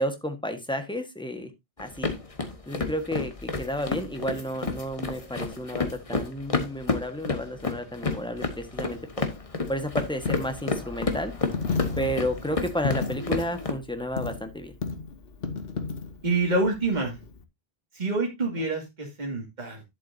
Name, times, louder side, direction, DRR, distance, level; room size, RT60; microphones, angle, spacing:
voice 1, 0.0-1.5 1.8-2.1 2.7-9.0 9.7-11.3 12.0-14.7, equal, 5° left, 6 dB, 1.3 m, -31 dB
sound 1, 1.8-13.7, left 3 dB, 35° left, 1.3 m, -31 dB
Coin (dropping), 8.9-17.4, left 5 dB, 65° left, 1.2 m, -35 dB
voice 2, 16.2-17.2 17.9-19.8, right 2 dB, 45° right, 0 dB, 2.4 m, -27 dB
11.0 x 7.5 x 2.7 m, 0.20 s
omnidirectional pair, 1.1 m